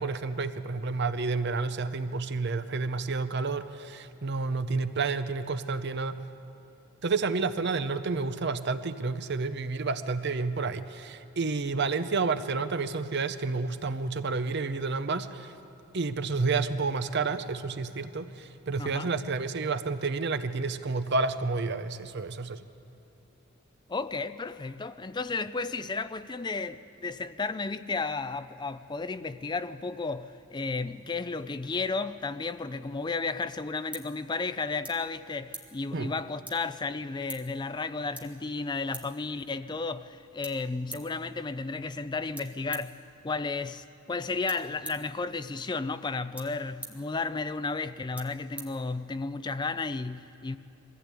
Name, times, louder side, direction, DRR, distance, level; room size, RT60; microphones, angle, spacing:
voice 1, 0.0-6.2 7.0-15.6 15.9-22.6 35.9-36.1, right 4 dB, 50° right, 0.7 m, -30 dB
voice 2, 18.8-19.1 23.9-50.6, left 3 dB, 20° left, 0.4 m, -33 dB
sound 1, 33.2-49.4, right 2 dB, 5° right, 1.3 m, -49 dB
22.0 x 15.5 x 8.4 m
head